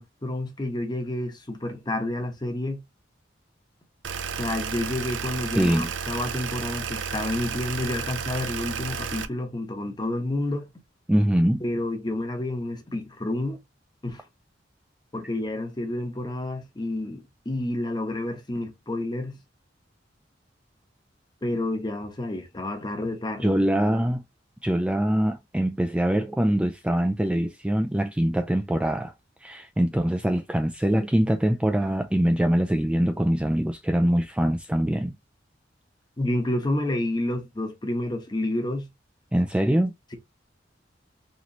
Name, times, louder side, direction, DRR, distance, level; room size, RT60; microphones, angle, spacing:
voice 1, 0.0-2.8 4.4-10.7 11.6-13.6 14.0-14.2 15.1-19.4 21.4-23.6 36.2-38.9, left 1 dB, 25° left, 1.0 m, -29 dB
sound 1, 4.0-9.3, right 6 dB, 85° right, 0.5 m, -32 dB
voice 2, 5.6-5.9 11.1-11.6 23.4-24.2 24.6-29.1 29.4-35.2 39.3-39.9, right 1 dB, 5° right, 0.3 m, -23 dB
4.1 x 3.0 x 2.9 m
head